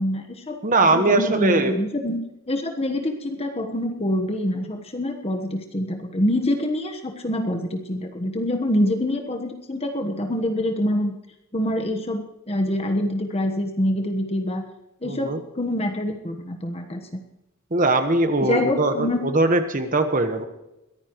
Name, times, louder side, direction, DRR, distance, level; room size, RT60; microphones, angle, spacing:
voice 1, 0.0-2.2 2.5-11.1 11.5-14.6 15.0-17.2 18.4-19.2, left 1 dB, 30° left, 4 dB, 1.2 m, -25 dB
voice 2, 0.6-1.7 15.0-15.4 17.7-20.5, right 2 dB, 40° right, 7 dB, 1.3 m, -21 dB
22.0 x 15.0 x 3.1 m, 0.92 s
head